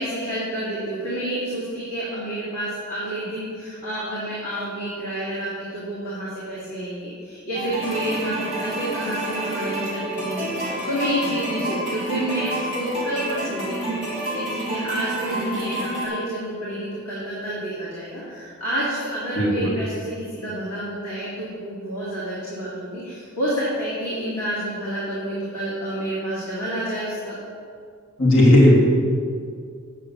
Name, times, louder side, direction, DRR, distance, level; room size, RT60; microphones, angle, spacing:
voice 1, 0.0-27.4, right 1 dB, 85° left, -8 dB, 2.7 m, -29 dB
sound 1, 7.5-16.1, right 1 dB, 20° left, 3.1 m, -29 dB
voice 2, 19.3-19.7 28.2-28.8, left 1 dB, 65° left, -5 dB, 2.5 m, -15 dB
9.2 x 6.4 x 7.0 m, 2.2 s
head